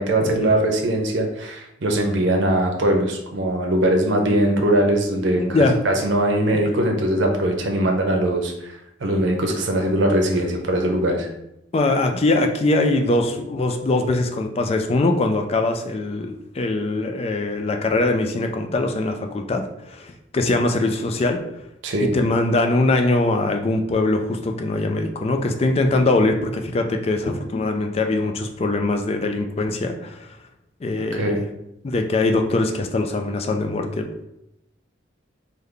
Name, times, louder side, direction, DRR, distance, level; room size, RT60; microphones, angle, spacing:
voice 1, 0.0-11.3 21.8-22.1 31.1-31.4, right 1 dB, 75° right, 3 dB, 0.6 m, -21 dB
voice 2, 5.4-5.8 6.5-6.6 9.0-9.1 11.7-21.4 22.1-30.3 30.8-31.4 31.8-34.3, left 2 dB, 35° left, 5 dB, 0.3 m, -22 dB
3.3 x 2.1 x 3.7 m, 0.83 s
head